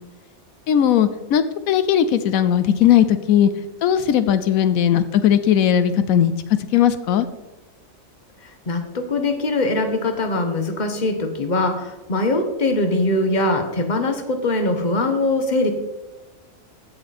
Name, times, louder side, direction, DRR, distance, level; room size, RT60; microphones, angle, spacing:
voice 1, 0.7-3.5 3.8-7.3, left 9 dB, 85° left, 12 dB, 1.1 m, -18 dB
voice 2, 8.4-15.7, left 2 dB, 35° left, 6 dB, 1.3 m, -22 dB
16.0 x 5.7 x 4.2 m, 1.1 s
omnidirectional pair, 1.4 m